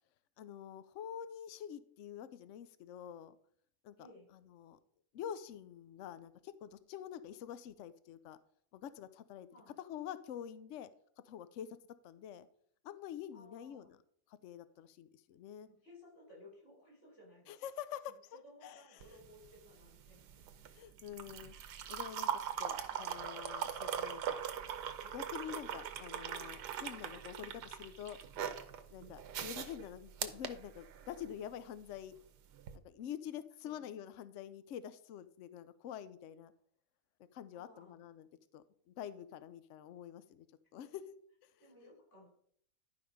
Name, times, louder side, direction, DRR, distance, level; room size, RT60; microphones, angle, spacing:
voice 1, 0.4-3.4 3.8-3.9 4.3-4.8 5.1-8.4 8.7-9.5 9.8-10.9 11.2-11.8 12.0-12.5 12.8-14.0 14.3-15.7 17.5-19.0 20.7-21.5 21.9-24.4 25.1-28.2 28.9-32.1 32.8-36.5 37.3-38.3 38.5-40.5 40.7-41.0 41.4-41.5, left 9 dB, 75° left, 13 dB, 0.7 m, -47 dB
voice 2, 4.0-4.3 9.5-9.8 13.3-13.9 15.7-17.5 18.3-20.2 27.4-27.6 33.6-33.8 37.5-38.0 40.8-40.9 41.6-42.3, left 1 dB, 45° left, -3 dB, 5.2 m, -59 dB
sound 1, 19.0-31.3 32.6-32.7, right 8 dB, 80° right, 1.4 m, -41 dB
11.5 x 5.3 x 5.1 m, 0.64 s
omnidirectional pair, 1.8 m